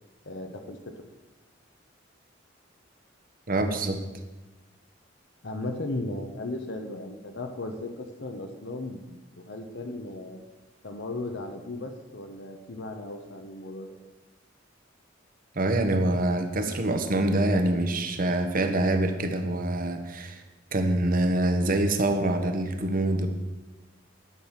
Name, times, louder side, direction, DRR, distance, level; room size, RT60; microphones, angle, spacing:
voice 1, 0.3-1.0 5.4-10.4 10.8-14.0, left 2 dB, 65° left, 4 dB, 1.1 m, -36 dB
voice 2, 3.5-4.0 15.5-20.4 20.7-23.3, right 1 dB, 50° right, 7 dB, 1.2 m, -25 dB
11.0 x 6.3 x 7.3 m, 1.1 s
head